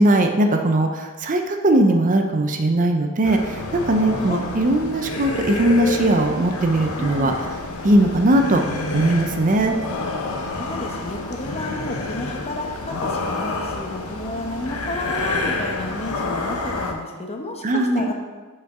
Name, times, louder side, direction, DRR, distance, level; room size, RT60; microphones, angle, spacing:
voice 1, 0.0-7.3 7.8-8.6 8.9-9.7 17.6-18.1, right 1 dB, 35° right, 4 dB, 0.5 m, -19 dB
sound 1, 3.2-16.9, left 2 dB, 75° left, 0.9 m, -28 dB
voice 2, 7.0-7.4 10.5-18.1, left 2 dB, 30° left, 2 dB, 0.9 m, -31 dB
6.7 x 5.5 x 4.8 m, 1.4 s
head